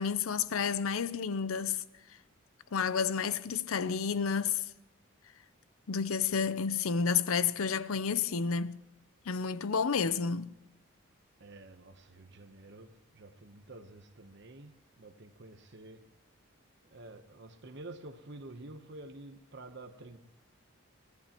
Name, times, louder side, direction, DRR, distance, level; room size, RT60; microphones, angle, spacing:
voice 1, 0.0-1.8 2.7-4.6 5.9-8.8 9.3-10.5, left 6 dB, 80° left, 0.6 m, -30 dB
voice 2, 11.4-16.1 16.8-20.2, right 2 dB, 55° right, 0.9 m, -49 dB
24.0 x 16.5 x 3.0 m
head